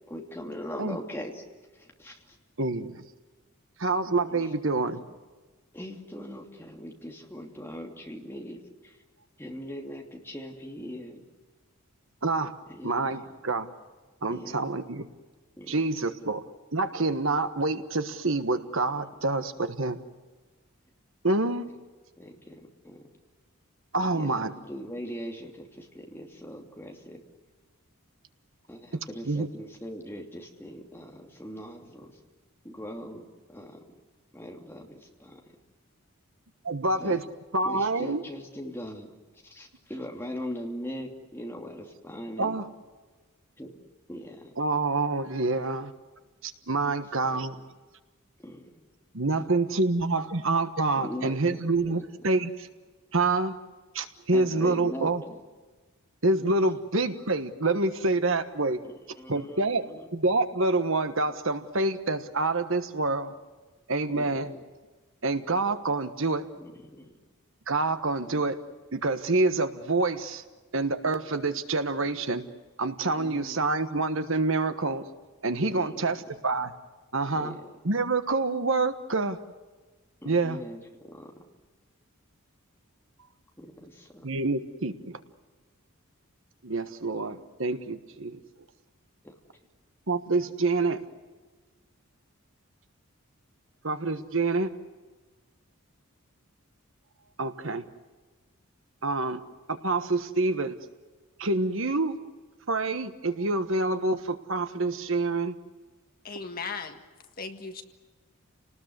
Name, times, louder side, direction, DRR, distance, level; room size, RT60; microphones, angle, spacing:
voice 1, 0.1-1.4 1.7-2.4 4.3-4.6 4.9-5.0 5.7-9.0 9.4-11.2 12.7-13.2 14.3-14.7 15.6-15.8 22.2-23.0 24.1-27.2 28.7-32.1 32.6-33.8 34.3-35.4 37.0-37.2 37.6-39.2 39.4-42.6 43.6-43.8 44.1-44.5 47.2-47.6 48.4-48.9 51.0-52.0 54.3-55.4 58.8-60.1 64.1-64.6 66.6-67.1 68.2-68.3 73.2-73.7 75.7-76.4 77.3-77.6 80.2-81.3 83.6-84.2 89.2-89.3, equal, 10° left, 1 dB, 2.8 m, -41 dB
voice 2, 2.6-3.0 3.8-5.0 12.2-12.5 12.8-13.7 14.2-15.0 15.7-16.4 16.7-20.0 21.2-21.7 23.9-24.5 29.3-29.5 36.6-37.2 37.5-38.2 42.4-42.7 44.6-45.9 46.4-47.6 49.1-52.7 53.1-53.6 53.9-55.2 56.2-58.8 59.3-59.8 60.1-63.3 63.9-64.5 65.2-66.4 67.7-68.6 68.9-70.4 70.7-72.4 72.8-75.0 75.4-76.7 77.1-77.6 77.8-79.4 80.2-80.6 84.2-85.2 86.6-88.4 90.1-91.0 93.8-94.7 97.4-97.8 99.0-99.4 99.7-100.8 101.4-102.2 102.7-105.6, right 3 dB, 65° right, 9 dB, 1.4 m, -27 dB
voice 3, 106.2-107.0 107.4-107.8, left 5 dB, 40° left, 6 dB, 1.7 m, -36 dB
29.5 x 19.5 x 8.1 m, 1.3 s
head